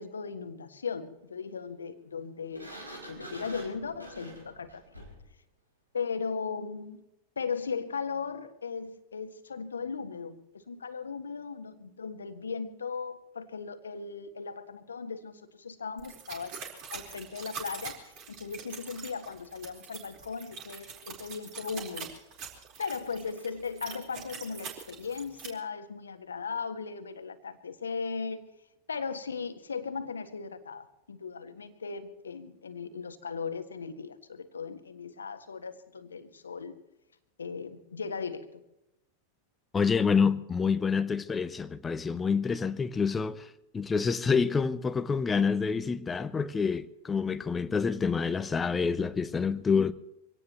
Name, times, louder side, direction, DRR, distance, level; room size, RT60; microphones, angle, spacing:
voice 1, 0.0-2.7 3.1-5.0 5.9-7.0 7.4-16.6 16.9-22.1 22.8-28.5 28.9-36.8 37.4-38.6, left 5 dB, 70° left, 1.5 m, -37 dB
Sliding door, 2.5-5.3, right 1 dB, 85° right, 4.6 m, -46 dB
sound 1, 16.0-25.5, right 6 dB, 40° right, 4.3 m, -44 dB
voice 2, 39.7-49.9, left 5 dB, 15° left, 0.7 m, -27 dB
25.0 x 17.5 x 3.1 m
figure-of-eight pair, 90°, 0 cm